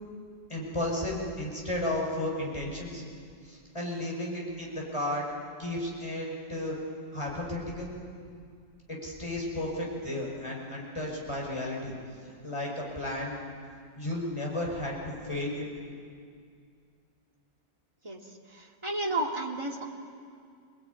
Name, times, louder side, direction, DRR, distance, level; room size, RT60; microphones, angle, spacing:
voice 1, 0.5-3.0 3.4-5.2 5.6-6.8 7.1-7.9 8.9-11.9 12.4-13.4 14.0-15.7, left 1 dB, 15° left, -2 dB, 5.7 m, -33 dB
voice 2, 18.0-19.8, right 2 dB, 15° right, -1 dB, 2.5 m, -33 dB
26.5 x 20.0 x 9.6 m, 2.3 s
omnidirectional pair, 1.9 m